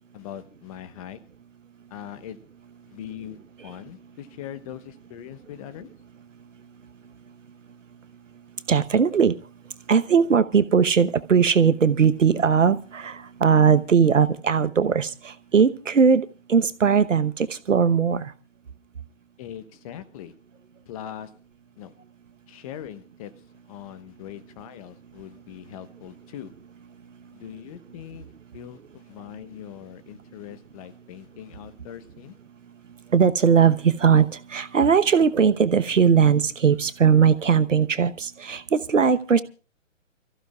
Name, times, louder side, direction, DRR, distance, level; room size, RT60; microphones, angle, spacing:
voice 1, 0.1-1.2 1.9-2.4 2.9-5.9 19.4-20.3 20.9-21.3 21.8-21.9 22.5-23.3 23.7-26.5 27.3-28.3 28.5-32.4, left 10 dB, 30° left, 13 dB, 1.1 m, -41 dB
voice 2, 8.7-9.4 9.9-18.3 33.1-39.4, right 6 dB, 75° right, 13 dB, 1.1 m, -19 dB
29.0 x 15.0 x 2.4 m, 0.34 s
figure-of-eight pair, 125°, 38 cm